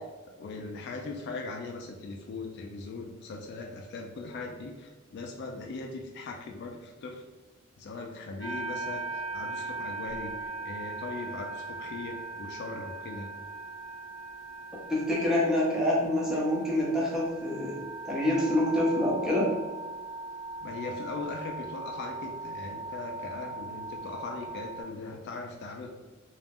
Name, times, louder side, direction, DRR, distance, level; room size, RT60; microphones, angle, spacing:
voice 1, 0.4-7.2 7.8-13.3 20.6-26.0, left 3 dB, 55° left, 2 dB, 0.3 m, -39 dB
sound 1, 8.4-24.8, right 3 dB, 80° right, 0.7 m, -39 dB
voice 2, 14.9-17.8 18.0-19.5, left 1 dB, 5° right, -6 dB, 0.7 m, -26 dB
2.4 x 2.0 x 3.4 m, 1.3 s
head